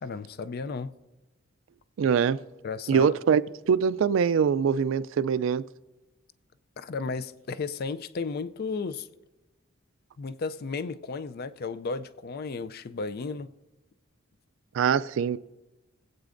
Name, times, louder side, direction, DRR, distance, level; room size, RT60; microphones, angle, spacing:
voice 1, 0.0-0.9 2.6-3.2 6.8-9.1 10.2-13.5, left 4 dB, 50° left, 0.4 m, -34 dB
voice 2, 2.0-2.4 2.9-5.6 14.7-15.4, right 7 dB, 70° right, 0.3 m, -23 dB
20.5 x 8.2 x 2.6 m
head